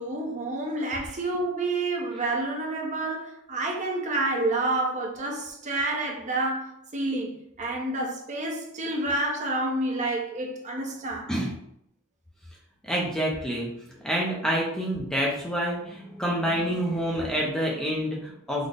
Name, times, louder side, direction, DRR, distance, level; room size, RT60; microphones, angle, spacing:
voice 1, 0.0-11.3, right 2 dB, 35° right, 0.6 m, -29 dB
voice 2, 12.8-13.7 14.0-18.7, equal, 5° left, 0.4 m, -27 dB
3.8 x 2.1 x 3.3 m
head